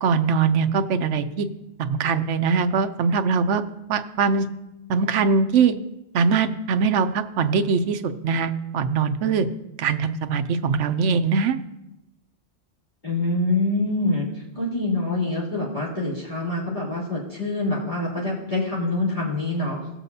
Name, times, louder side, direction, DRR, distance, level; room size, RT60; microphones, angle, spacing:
voice 1, 0.0-1.5 1.8-3.6 3.9-4.5 4.9-5.7 6.1-9.5 9.8-11.6, right 5 dB, 85° right, 10 dB, 1.0 m, -22 dB
voice 2, 13.0-19.8, left 2 dB, 40° left, -9 dB, 3.2 m, -25 dB
18.5 x 7.4 x 2.7 m, 0.94 s
omnidirectional pair, 1.2 m